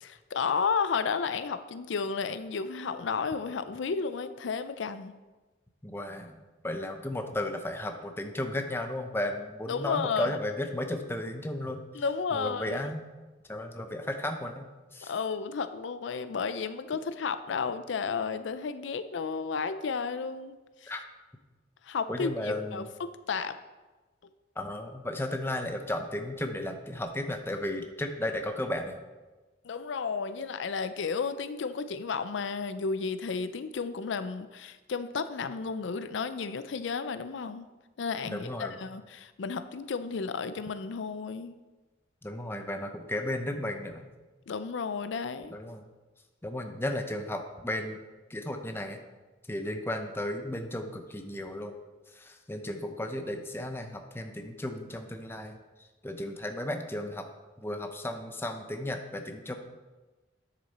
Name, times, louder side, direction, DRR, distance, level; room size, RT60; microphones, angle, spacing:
voice 1, 0.0-5.1 9.7-10.4 11.9-12.8 15.1-20.6 20.8-20.9 21.8-23.6 29.6-37.7 38.0-41.5 44.5-45.6, left 5 dB, 80° left, 12 dB, 0.5 m, -32 dB
voice 2, 5.8-11.8 12.3-13.0 13.5-14.7 14.9-15.1 20.9-21.0 22.1-22.9 24.6-29.0 38.2-38.8 42.2-44.1 45.5-45.8 46.4-48.0 48.3-49.0 49.5-51.7 52.1-55.6 56.0-57.3 57.6-59.5, left 1 dB, 10° left, 5 dB, 0.7 m, -34 dB
9.7 x 6.9 x 4.2 m, 1.2 s
head